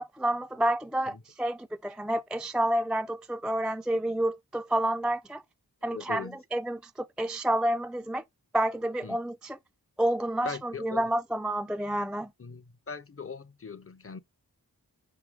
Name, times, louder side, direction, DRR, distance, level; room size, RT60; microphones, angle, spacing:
voice 1, 0.0-5.4 5.8-8.2 8.5-9.6 10.0-12.3, right 1 dB, 5° right, 0.3 m, -29 dB
voice 2, 5.9-6.4 9.0-9.2 10.4-11.0 12.4-14.2, left 5 dB, 35° left, 0.6 m, -40 dB
5.6 x 4.6 x 3.6 m
wide cardioid pair, 50°, 37 cm